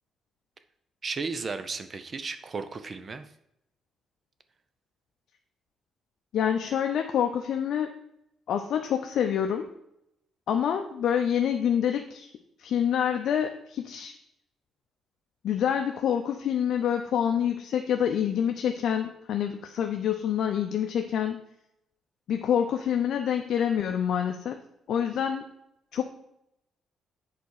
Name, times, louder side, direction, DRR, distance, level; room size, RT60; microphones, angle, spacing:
voice 1, 1.0-3.2, right 4 dB, 35° right, 11 dB, 0.6 m, -34 dB
voice 2, 6.3-7.9 8.5-9.7 10.5-12.3 12.6-14.1 15.4-21.4 22.3-24.6 24.9-25.5 25.9-26.0, left 9 dB, 65° left, 5 dB, 0.6 m, -27 dB
7.0 x 4.2 x 6.5 m, 0.78 s
cardioid pair, 115°, 0 cm